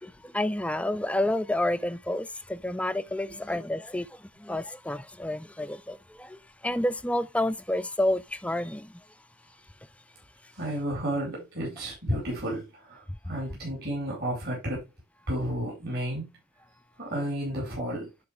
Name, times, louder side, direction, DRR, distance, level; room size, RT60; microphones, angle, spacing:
voice 1, 0.0-4.1 4.4-8.9, left 1 dB, 5° left, 0.3 m, -29 dB
voice 2, 10.6-14.8 15.3-16.4 17.0-18.1, right 1 dB, 50° right, 4.7 m, -32 dB
11.5 x 4.7 x 3.4 m
head